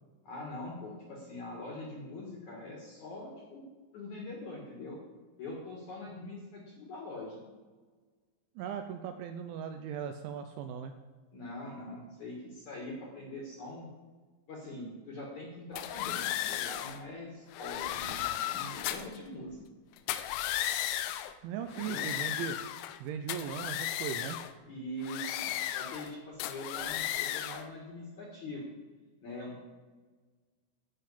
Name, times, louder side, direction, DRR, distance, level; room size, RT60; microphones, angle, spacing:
voice 1, 0.2-3.6 3.9-5.0 5.4-7.4 11.3-13.9 14.5-19.6 21.6-22.1 24.7-28.7 29.2-29.6, left 1 dB, 60° left, -3 dB, 2.1 m, -43 dB
voice 2, 8.6-10.9 21.4-22.6 23.0-24.4, right 8 dB, 85° right, 7 dB, 2.7 m, -38 dB
sound 1, 15.8-17.0 17.5-19.2 20.0-21.3 21.7-23.0 23.3-24.5 25.0-26.1 26.4-27.7, left 13 dB, 85° left, 2.7 m, -35 dB
12.5 x 5.8 x 8.3 m, 1.4 s
omnidirectional pair, 5.9 m